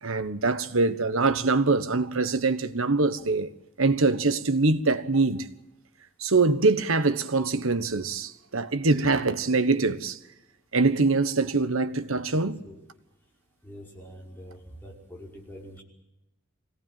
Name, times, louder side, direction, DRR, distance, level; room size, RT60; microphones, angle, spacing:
voice 1, 0.0-3.5 3.8-5.5 6.2-10.2 10.7-12.6, right 3 dB, 90° right, 1.3 m, -24 dB
voice 2, 12.3-12.8 13.6-15.8, equal, 10° left, 5.2 m, -45 dB
25.0 x 18.0 x 9.1 m
head